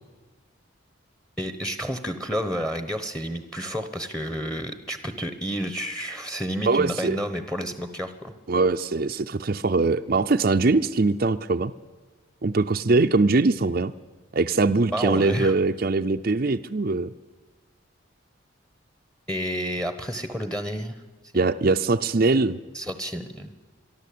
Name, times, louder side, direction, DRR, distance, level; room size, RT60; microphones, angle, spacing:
voice 1, 1.4-8.3 14.9-15.5 19.3-21.0 22.7-23.5, equal, 5° left, 10 dB, 1.0 m, -30 dB
voice 2, 6.7-7.2 8.5-11.7 12.4-13.9 14.3-17.1 21.3-22.6, right 3 dB, 45° right, 7 dB, 0.5 m, -22 dB
23.0 x 13.0 x 8.5 m, 1.4 s
head